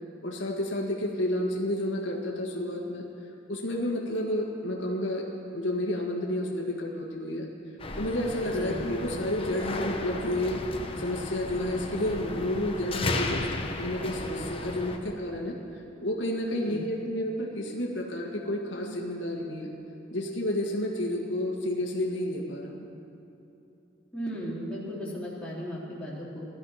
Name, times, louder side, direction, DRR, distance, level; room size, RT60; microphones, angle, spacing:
voice 1, 0.2-3.0 3.5-5.3 5.5-7.5 8.0-10.6 11.0-13.5 13.8-15.6 16.0-19.7 20.1-22.9, left 1 dB, 75° left, -1 dB, 1.8 m, -30 dB
sound 1, 7.8-15.0, left 2 dB, 30° left, 1.0 m, -35 dB
voice 2, 8.4-8.9 16.5-16.9 24.1-26.5, equal, 5° left, -7 dB, 3.2 m, -36 dB
16.5 x 12.5 x 5.8 m, 2.9 s
head